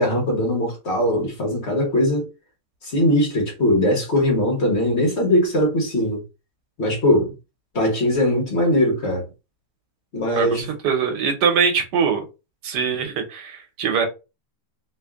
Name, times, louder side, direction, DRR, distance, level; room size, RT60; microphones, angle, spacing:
voice 1, 0.0-2.3 2.8-6.2 6.8-7.3 7.7-9.2 10.1-10.7, left 1 dB, 45° left, 1.2 m, -20 dB
voice 2, 10.4-12.2 12.6-14.1, right 6 dB, 80° right, 1.4 m, -22 dB
3.2 x 2.5 x 3.4 m
omnidirectional pair, 1.8 m